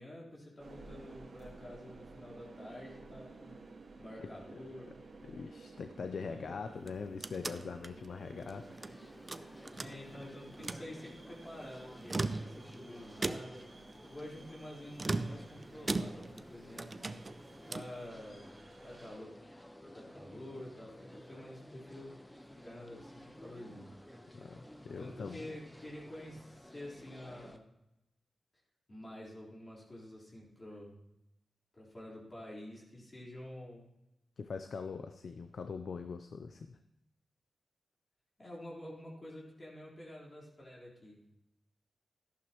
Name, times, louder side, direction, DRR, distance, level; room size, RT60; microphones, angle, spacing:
voice 1, 0.0-3.6 4.0-4.9 6.3-6.6 9.8-13.7 14.1-17.0 17.7-18.6 18.8-19.3 19.8-22.1 22.5-23.9 25.0-27.6 28.9-31.0 31.8-33.8 38.4-41.2, left 1 dB, 40° left, -5 dB, 4.0 m, -48 dB
sound 1, 0.6-19.2, right 3 dB, 65° right, 1.7 m, -54 dB
voice 2, 4.2-4.9 5.2-8.9 9.4-9.7 24.3-25.5 34.4-36.8, left 5 dB, 75° left, 8 dB, 0.6 m, -43 dB
sound 2, 6.8-8.9 9.3-10.3 10.5-10.9 11.9-12.8 13.2-13.7 15.0-16.5 16.8-18.0, right 3 dB, 40° right, 0.5 m, -38 dB
sound 3, 8.5-27.6, equal, 10° left, 1.0 m, -54 dB
13.0 x 11.0 x 3.0 m, 0.87 s
cardioid pair, 55°, 0 cm